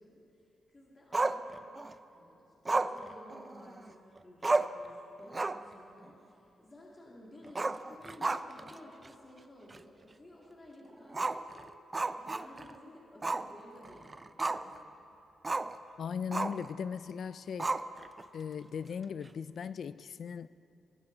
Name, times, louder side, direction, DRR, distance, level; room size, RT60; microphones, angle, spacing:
voice 1, 0.0-1.8 2.1-15.4, left 1 dB, 25° left, -4 dB, 2.3 m, -55 dB
Growling, 1.1-1.9 2.7-3.9 4.2-4.3 4.4-4.9 5.2-5.7 6.0-6.1 7.5-8.7 9.0-9.1 9.7-9.8 11.1-12.7 13.2-13.5 13.8-14.8 15.4-15.8 16.3-16.7 17.6-18.2, right 3 dB, 25° right, 0.4 m, -32 dB
voice 2, 16.0-17.8 18.3-20.5, left 7 dB, 60° left, 16 dB, 0.3 m, -38 dB
18.0 x 13.5 x 3.9 m, 2.7 s
cardioid pair, 120°, 0 cm